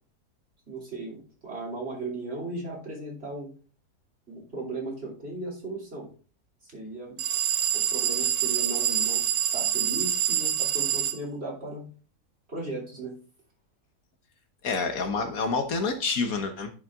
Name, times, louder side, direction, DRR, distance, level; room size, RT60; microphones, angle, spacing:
voice 1, 0.7-3.5 4.3-6.1 6.6-7.2 7.7-9.2 9.5-11.9 12.5-13.1, right 2 dB, 40° right, -3 dB, 3.4 m, -36 dB
sound 1, 7.2-11.2, right 10 dB, 75° right, 1.3 m, -26 dB
voice 2, 14.6-16.7, left 4 dB, 65° left, 7 dB, 1.4 m, -28 dB
10.5 x 5.5 x 3.6 m, 0.37 s
omnidirectional pair, 1.7 m